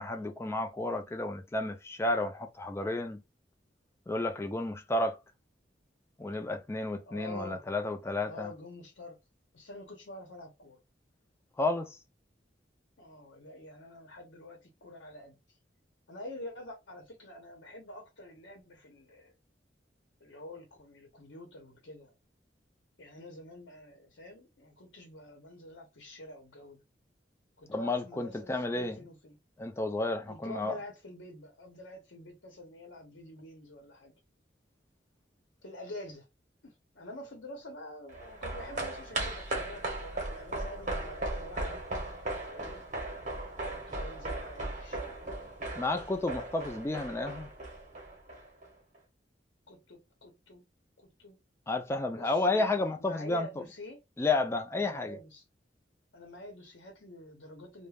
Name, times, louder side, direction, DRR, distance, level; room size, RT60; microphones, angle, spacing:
voice 1, 0.0-3.2 4.1-5.2 6.2-8.5 11.6-12.0 27.7-29.1 29.6-30.8 45.8-47.5 51.7-53.6 54.2-55.2, left 2 dB, 15° left, 0.4 m, -31 dB
voice 2, 7.1-7.6 8.2-9.2 9.5-10.8 13.0-15.6 16.1-19.3 20.2-22.1 23.0-26.8 27.6-29.4 30.3-34.1 35.6-36.3 36.6-41.8 42.5-42.8 43.1-43.2 43.7-45.3 49.7-50.6 51.0-51.4 52.1-54.0 54.8-55.4 56.1-57.9, left 1 dB, 80° left, 0.8 m, -47 dB
sound 1, 38.1-48.7 48.9-49.0, right 2 dB, 45° right, 0.8 m, -37 dB
2.3 x 2.1 x 3.3 m
head